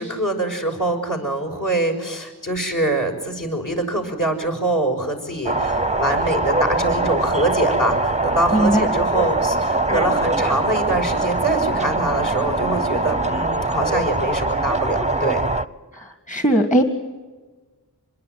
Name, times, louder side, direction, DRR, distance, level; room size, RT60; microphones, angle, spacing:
voice 1, 0.0-15.4, right 1 dB, 50° left, 5 dB, 6.3 m, -24 dB
sound 1, 5.5-15.7, right 2 dB, 15° right, 0.7 m, -22 dB
voice 2, 8.5-8.9 15.9-16.8, right 1 dB, 20° left, 8 dB, 1.8 m, -19 dB
26.0 x 22.0 x 9.3 m, 1.3 s
wide cardioid pair, 55°, 39 cm